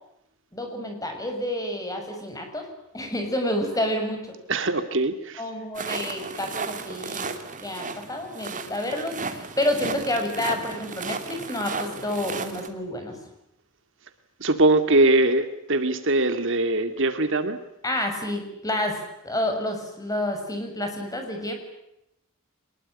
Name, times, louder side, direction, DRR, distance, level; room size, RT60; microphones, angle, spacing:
voice 1, 0.5-2.6 2.9-4.3 5.4-7.3 7.6-13.2 17.8-21.5, left 1 dB, 15° left, 4 dB, 6.8 m, -29 dB
voice 2, 4.5-5.4 14.4-17.6, right 2 dB, 60° right, 9 dB, 2.3 m, -22 dB
sound 1, 5.7-12.7, right 4 dB, 35° right, 2.9 m, -34 dB
24.5 x 21.5 x 10.0 m, 0.84 s
head